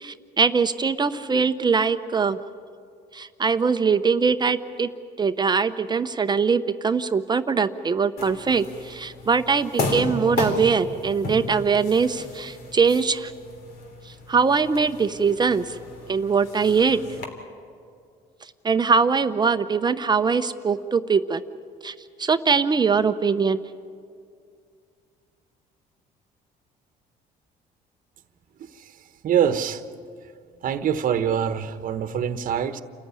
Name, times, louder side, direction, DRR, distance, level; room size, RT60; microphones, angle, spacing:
voice 1, 0.0-2.4 3.1-4.9 5.2-13.3 14.1-15.8 16.1-17.0 18.6-21.4 21.8-23.6, right 5 dB, 25° right, 10 dB, 0.7 m, -22 dB
sound 1, 8.2-17.2, left 2 dB, 65° left, 3.5 m, -33 dB
voice 2, 29.2-29.8 30.6-32.8, right 8 dB, 55° right, 10 dB, 1.1 m, -24 dB
28.5 x 14.5 x 9.8 m, 2.3 s
cardioid pair, 110°, 17 cm